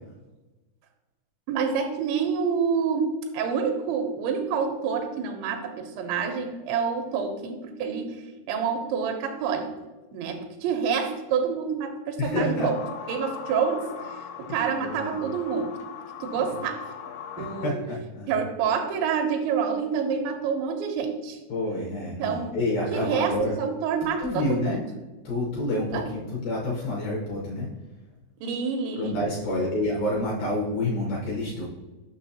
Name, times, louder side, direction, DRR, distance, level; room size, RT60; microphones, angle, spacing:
voice 1, 1.5-9.7 10.1-12.7 13.1-15.8 16.2-16.9 17.4-17.8 18.3-21.4 22.2-22.6 22.9-24.8 25.9-26.0 28.4-29.1, right 6 dB, 85° right, 5 dB, 3.0 m, -28 dB
voice 2, 12.2-12.7 14.8-15.2 16.5-16.6 17.4-18.3 21.5-23.6 24.2-24.8 25.2-27.7 29.0-31.6, left 1 dB, 70° left, -3 dB, 2.2 m, -28 dB
sound 1, 12.6-17.7, left 7 dB, 85° left, 2.3 m, -39 dB
7.2 x 6.1 x 2.7 m, 1.1 s
omnidirectional pair, 5.2 m